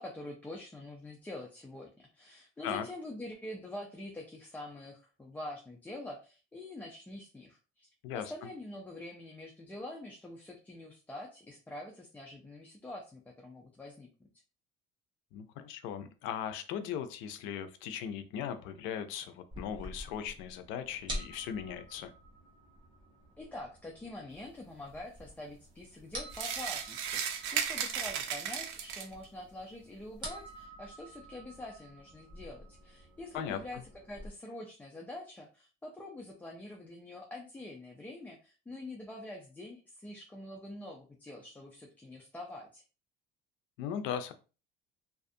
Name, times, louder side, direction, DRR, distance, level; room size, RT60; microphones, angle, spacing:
voice 1, 0.0-14.1 23.4-33.8 34.1-42.8, left 1 dB, 10° left, 0 dB, 0.3 m, -45 dB
voice 2, 15.3-22.1 33.3-33.8 43.8-44.3, left 8 dB, 75° left, 9 dB, 0.5 m, -38 dB
sound 1, 19.5-34.3, equal, 25° right, 1.0 m, -48 dB
sound 2, 26.3-29.2, right 8 dB, 75° right, 0.5 m, -35 dB
2.4 x 2.4 x 2.5 m, 0.34 s
cardioid pair, 135°, 20 cm